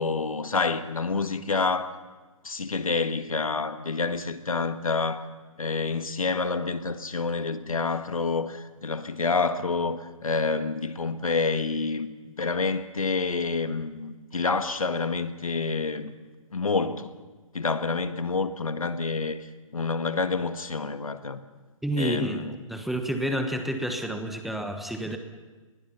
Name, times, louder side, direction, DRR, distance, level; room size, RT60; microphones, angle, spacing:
voice 1, 0.0-2.0 2.4-5.3 5.6-16.1 16.5-17.1 17.5-19.5 19.7-21.4 22.0-22.6, left 4 dB, 80° left, 10 dB, 1.7 m, -28 dB
voice 2, 21.8-25.2, right 1 dB, ahead, 6 dB, 1.2 m, -29 dB
26.5 x 20.5 x 5.8 m, 1.3 s
figure-of-eight pair, 140°, 18 cm